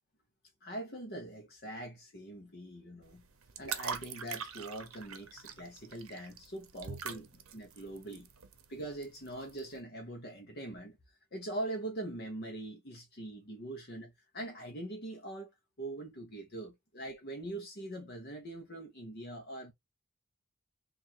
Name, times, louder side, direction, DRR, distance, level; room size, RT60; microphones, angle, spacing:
voice 1, 0.6-3.2 3.6-8.3 8.7-11.0 11.3-15.5 15.8-19.7, right 1 dB, 45° left, 1.0 m, -42 dB
sound 1, 3.0-9.8, right 7 dB, 70° right, 0.7 m, -44 dB
3.4 x 2.6 x 4.3 m
head